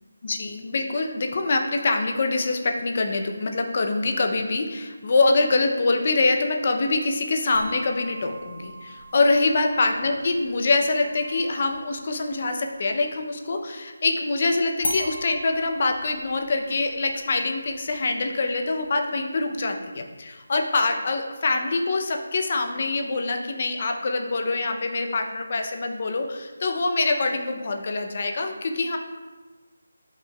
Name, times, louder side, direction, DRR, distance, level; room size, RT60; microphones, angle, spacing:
voice 1, 0.2-29.0, left 3 dB, 35° left, 4 dB, 0.6 m, -24 dB
sound 1, 7.5-13.1 14.8-19.8, left 1 dB, 60° left, 1.6 m, -40 dB
8.9 x 5.5 x 2.3 m, 1.3 s
figure-of-eight pair, 175°, 0 cm